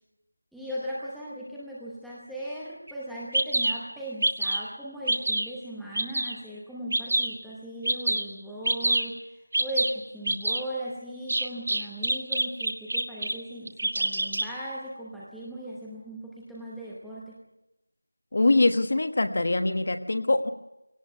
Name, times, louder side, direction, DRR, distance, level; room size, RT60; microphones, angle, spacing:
voice 1, 0.5-17.4, right 1 dB, ahead, -8 dB, 0.9 m, -38 dB
Bird vocalization bird call bird song, 2.9-3.0 3.3-3.7 4.2-4.7 5.1-5.5 5.9-6.3 6.9-7.3 7.8-8.2 8.6-9.0 9.5-9.9 10.3-10.6 11.3-13.3 13.7-14.5, right 2 dB, 35° right, 1.9 m, -25 dB
voice 2, 18.3-20.5, left 2 dB, 25° left, 9 dB, 1.2 m, -23 dB
19.0 x 18.0 x 9.4 m, 0.93 s
figure-of-eight pair, 180°, 0 cm